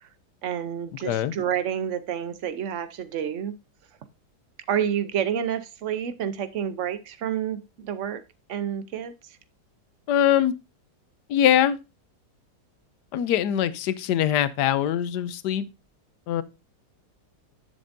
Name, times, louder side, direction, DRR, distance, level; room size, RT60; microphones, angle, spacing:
voice 1, 0.4-3.5 4.7-8.2 8.5-9.1, right 9 dB, 55° right, 0.9 m, -29 dB
voice 2, 10.1-10.5 11.3-11.8 13.1-15.7 16.3-16.4, left 10 dB, 90° left, 1.2 m, -22 dB
10.5 x 6.9 x 2.6 m
omnidirectional pair, 1.8 m